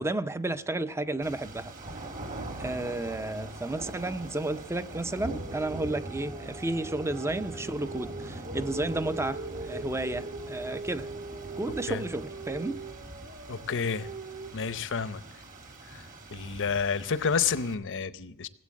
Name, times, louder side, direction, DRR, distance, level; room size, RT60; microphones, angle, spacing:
voice 1, 0.0-1.7 2.6-11.1 11.6-12.8, right 2 dB, 10° right, 0.5 m, -32 dB
sound 1, 1.2-17.7, right 1 dB, 35° right, 1.5 m, -42 dB
sound 2, 5.2-14.5, right 3 dB, 55° right, 1.5 m, -41 dB
voice 2, 13.5-14.1 14.5-15.2 15.9-16.0 16.3-18.5, left 6 dB, 55° left, 0.7 m, -29 dB
18.0 x 8.2 x 7.4 m
head